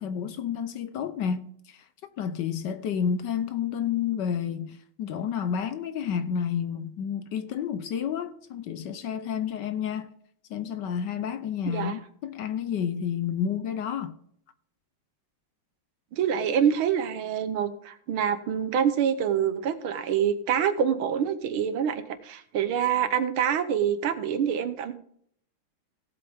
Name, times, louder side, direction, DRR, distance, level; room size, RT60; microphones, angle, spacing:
voice 1, 0.0-1.8 2.2-10.1 10.5-14.1, left 8 dB, 70° left, 1.2 m, -30 dB
voice 2, 11.7-12.0 16.1-24.9, right 8 dB, 85° right, 1.8 m, -26 dB
17.0 x 7.9 x 3.5 m
omnidirectional pair, 2.2 m